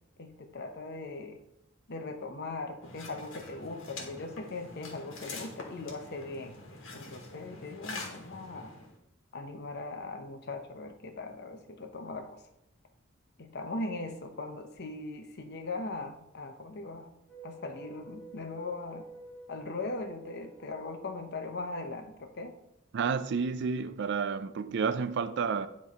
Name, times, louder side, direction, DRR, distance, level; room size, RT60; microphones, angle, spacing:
voice 1, 0.2-1.4 1.9-6.6 6.9-8.7 9.3-12.4 13.4-17.1 17.4-19.1 19.5-22.5, left 2 dB, 55° left, 0.8 m, -39 dB
sound 1, 2.8-9.0, left 3 dB, 80° left, 1.3 m, -45 dB
sound 2, 17.3-22.5, right 2 dB, 5° right, 1.4 m, -51 dB
voice 2, 22.9-25.7, right 5 dB, 60° right, 0.4 m, -30 dB
9.3 x 3.2 x 4.2 m
head